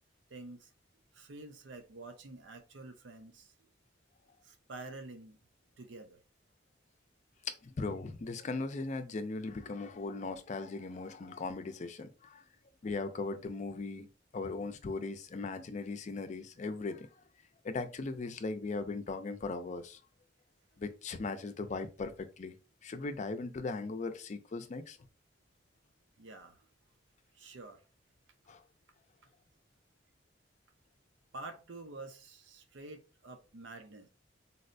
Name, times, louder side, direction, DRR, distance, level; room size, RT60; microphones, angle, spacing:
voice 1, 0.3-0.7 1.1-3.7 4.4-5.4 5.8-6.2 26.2-26.6 27.3-27.8 31.3-34.1, right 2 dB, 90° right, 0.6 m, -48 dB
voice 2, 7.5-12.4 12.8-14.1 14.3-17.1 17.6-20.0 20.8-22.5 22.8-25.0 28.5-28.6, left 3 dB, 40° left, 0.4 m, -38 dB
4.0 x 2.1 x 2.6 m
head